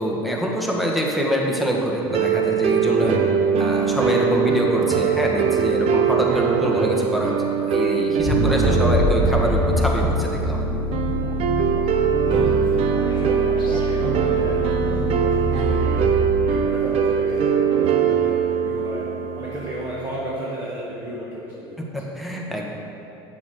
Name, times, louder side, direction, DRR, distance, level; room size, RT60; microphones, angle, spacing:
voice 1, 0.0-3.2 3.5-7.3 7.6-10.7 21.8-22.6, equal, ahead, -1 dB, 1.5 m, -24 dB
sound 1, 2.1-20.1, right 7 dB, 50° right, 0.8 m, -22 dB
sound 2, 8.2-16.4, left 1 dB, 35° left, 1.7 m, -24 dB
voice 2, 11.7-16.1 16.4-19.1 19.3-21.8, right 1 dB, 15° right, -6 dB, 1.6 m, -33 dB
8.2 x 7.0 x 4.9 m, 2.9 s
hypercardioid pair, 95°, 13 cm